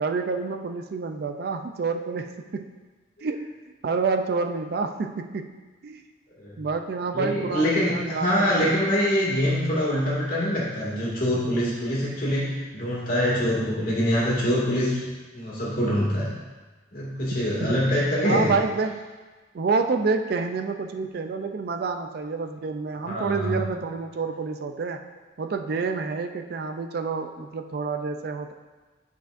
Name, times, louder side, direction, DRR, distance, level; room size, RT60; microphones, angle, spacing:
voice 1, 0.0-2.7 3.2-3.5 3.8-5.5 5.8-6.0 6.6-8.7 17.3-17.8 18.2-19.0 19.5-25.0 25.4-28.5, right 4 dB, 55° right, 6 dB, 0.4 m, -28 dB
voice 2, 7.1-15.1 15.3-16.3 16.9-18.5 23.0-23.6, equal, 50° left, -6 dB, 2.0 m, -24 dB
9.3 x 5.2 x 2.5 m, 1.3 s
head